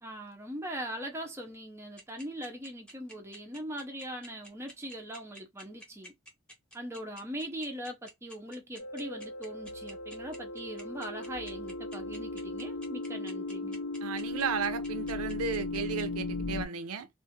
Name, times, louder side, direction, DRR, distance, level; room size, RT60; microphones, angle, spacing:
voice 1, 0.0-6.1 6.7-13.8, equal, 10° right, 0.5 m, -41 dB
sound 1, 2.0-16.0, right 1 dB, 5° left, 0.9 m, -49 dB
sound 2, 8.8-16.7, left 2 dB, 65° left, 0.7 m, -37 dB
voice 2, 14.0-17.1, right 6 dB, 85° right, 0.5 m, -34 dB
2.5 x 2.4 x 2.7 m
head